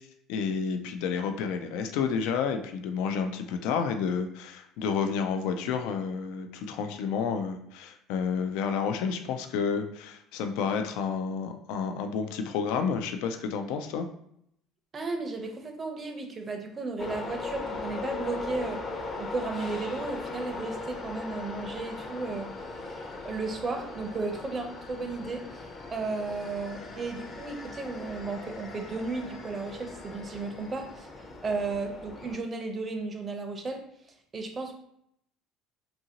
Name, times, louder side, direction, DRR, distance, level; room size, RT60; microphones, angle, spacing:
voice 1, 0.3-14.1, left 6 dB, 80° left, 6 dB, 0.3 m, -30 dB
voice 2, 14.9-18.8 19.2-22.5 22.9-23.0 23.2-31.1 31.4-33.9 34.3-34.7, right 3 dB, 30° right, 4 dB, 0.5 m, -34 dB
sound 1, 17.0-32.4, left 3 dB, 30° left, 0.6 m, -39 dB
2.8 x 2.5 x 2.8 m, 0.72 s
supercardioid pair, 105°, 0 cm